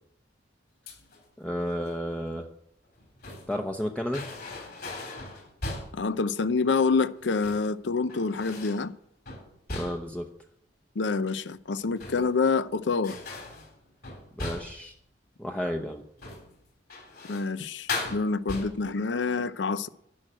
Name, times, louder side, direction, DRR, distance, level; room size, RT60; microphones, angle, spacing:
sound 1, 0.9-1.3 2.8-3.6 4.1-6.1 7.2-7.7 8.1-8.9 9.3-10.2 11.8-12.5 13.0-14.9 16.1-16.5 16.9-17.5 17.9-19.0, left 2 dB, 60° left, 3.9 m, -38 dB
voice 1, 1.4-2.5 3.5-4.2 9.7-10.3 14.4-14.9 15.4-16.0, equal, 5° left, 0.7 m, -32 dB
voice 2, 5.9-8.9 11.0-13.2 17.3-19.9, left 4 dB, 80° left, 0.6 m, -27 dB
11.0 x 6.3 x 8.8 m
head